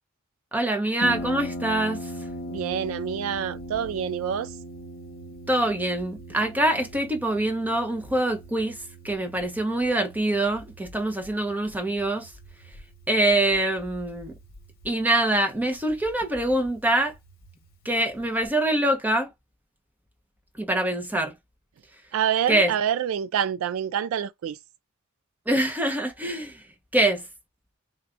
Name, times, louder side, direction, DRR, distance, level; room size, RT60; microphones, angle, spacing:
voice 1, 0.5-2.1 5.5-8.8 9.0-12.3 13.1-14.3 14.8-17.1 17.8-19.3 20.6-21.3 22.5-22.7 25.5-26.6 26.9-27.2, right 1 dB, 10° right, 0.9 m, -24 dB
Harp, 1.0-18.5, equal, 50° left, 1.0 m, -41 dB
voice 2, 2.5-4.6 22.1-24.6, right 8 dB, 75° right, 0.3 m, -27 dB
3.7 x 2.5 x 3.4 m
head